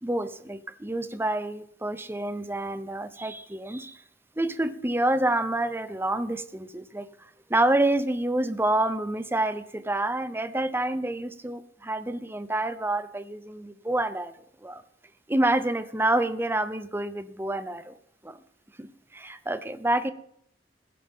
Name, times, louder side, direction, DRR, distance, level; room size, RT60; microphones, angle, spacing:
voice 1, 0.0-4.0 4.4-14.4 14.6-14.8 15.3-17.9 18.2-18.4 18.8-20.1, right 1 dB, 15° right, 0.8 m, -28 dB
16.5 x 11.0 x 3.7 m
head